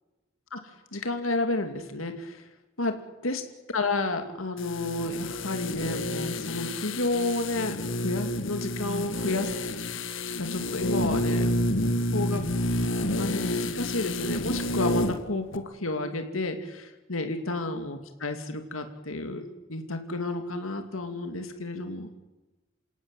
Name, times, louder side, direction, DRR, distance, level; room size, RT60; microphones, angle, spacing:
voice 1, 0.9-2.5 2.8-3.4 3.7-9.6 10.2-11.5 11.8-12.5 13.2-22.1, left 2 dB, 85° left, 6 dB, 2.6 m, -31 dB
sound 1, 4.6-15.2 15.5-15.6, left 1 dB, 70° left, 1.7 m, -29 dB
28.5 x 17.5 x 9.2 m, 1.1 s
head